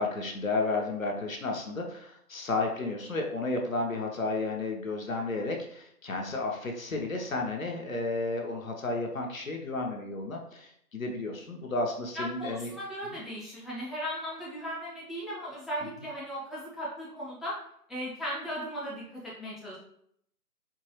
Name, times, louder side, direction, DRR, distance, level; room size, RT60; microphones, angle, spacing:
voice 1, 0.0-12.7 13.1-13.2, left 3 dB, 60° left, 1 dB, 0.7 m, -32 dB
voice 2, 12.1-17.5 17.9-19.8, equal, ahead, -8 dB, 0.5 m, -37 dB
4.5 x 2.2 x 2.9 m, 0.70 s
figure-of-eight pair, 170°, 47 cm